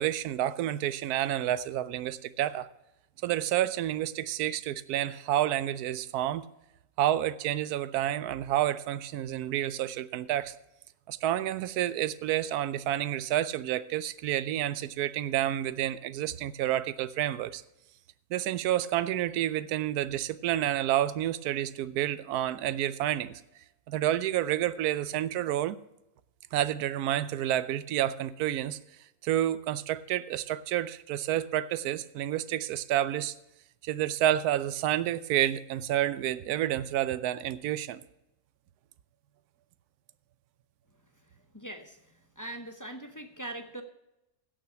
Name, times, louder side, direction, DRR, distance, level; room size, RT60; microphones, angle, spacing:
voice 1, 0.0-2.7 3.2-6.5 7.0-10.5 11.1-17.6 18.3-23.4 23.9-25.8 26.5-28.8 29.2-33.3 33.8-38.0, right 12 dB, 90° right, 16 dB, 1.1 m, -29 dB
voice 2, 41.5-42.0 42.4-43.8, right 1 dB, 15° left, 6 dB, 0.7 m, -41 dB
16.5 x 6.4 x 5.8 m, 0.89 s
omnidirectional pair, 1.6 m